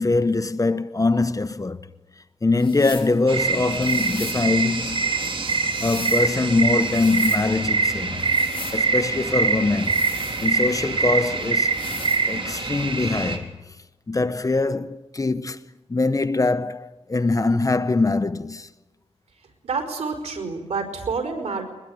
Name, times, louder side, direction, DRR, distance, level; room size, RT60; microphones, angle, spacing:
voice 1, 0.0-1.8 2.4-5.3 5.8-8.2 8.7-10.1 10.4-11.8 12.3-13.7 14.1-18.7, left 3 dB, 30° left, 1.1 m, -23 dB
sound 1, 2.6-3.1 3.8-4.4 5.4-6.3 6.8-7.4 8.2-8.8 9.8-10.8 11.6-12.2, left 4 dB, 50° left, 7.0 m, -39 dB
sound 2, 3.3-13.4, right 4 dB, 50° right, 3.8 m, -24 dB
voice 2, 19.6-21.6, right 4 dB, 90° right, 5.1 m, -28 dB
22.5 x 21.0 x 9.5 m
wide cardioid pair, 75°, 11 cm